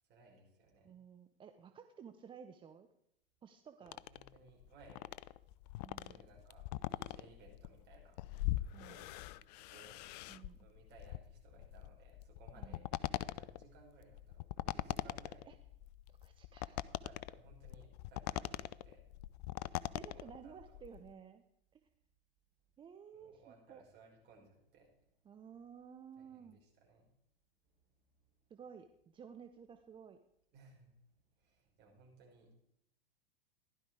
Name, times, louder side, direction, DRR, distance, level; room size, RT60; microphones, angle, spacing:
voice 1, 0.1-1.0 3.8-5.1 6.0-8.2 8.9-10.1 10.6-12.9 13.2-15.5 17.0-19.0 20.1-20.6 23.1-25.3 26.2-27.1 27.7-28.4 30.5-32.5, right 4 dB, 35° right, -1 dB, 5.5 m, -62 dB
voice 2, 0.8-2.9 3.4-4.0 5.8-6.2 8.7-9.0 10.3-10.7 12.6-12.8 15.5-15.6 16.1-16.8 19.9-21.4 21.7-21.8 22.8-23.8 25.2-26.6 28.5-30.2, right 7 dB, 15° right, 8 dB, 0.6 m, -54 dB
sound 1, 3.9-21.1, left 16 dB, 45° left, 0.5 m, -42 dB
15.5 x 11.5 x 4.8 m, 0.77 s
figure-of-eight pair, 95°, 29 cm